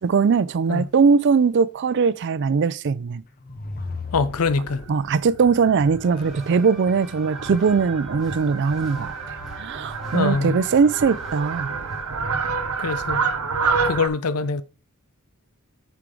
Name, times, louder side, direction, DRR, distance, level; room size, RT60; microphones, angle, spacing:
voice 1, 0.0-3.2 4.9-11.7, right 5 dB, 55° right, 0.4 m, -20 dB
sound 1, 3.2-5.3, left 3 dB, 45° left, 0.8 m, -35 dB
voice 2, 4.1-4.8 10.1-10.6 12.8-13.2 13.8-14.6, left 4 dB, 85° left, 0.6 m, -23 dB
Fowl, 4.7-14.1, right 5 dB, 85° right, 1.0 m, -29 dB
sound 2, 6.0-12.3, equal, ahead, 2.9 m, -46 dB
8.5 x 4.7 x 3.8 m
head